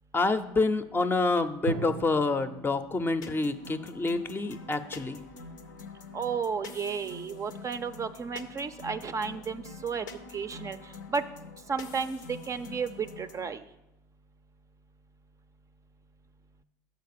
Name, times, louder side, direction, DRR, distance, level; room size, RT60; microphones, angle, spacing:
voice 1, 0.1-5.2, left 3 dB, 20° left, 9 dB, 0.5 m, -27 dB
Drum, 1.7-5.4, right 5 dB, 90° right, 0.4 m, -41 dB
sound 1, 3.2-13.5, left 4 dB, 90° left, 0.6 m, -46 dB
voice 2, 6.1-10.1 10.3-10.8 11.1-11.2 11.7-12.2 12.5-13.6, right 5 dB, 35° right, 11 dB, 0.4 m, -32 dB
6.3 x 4.7 x 6.7 m, 0.91 s
hypercardioid pair, 75°, 10 cm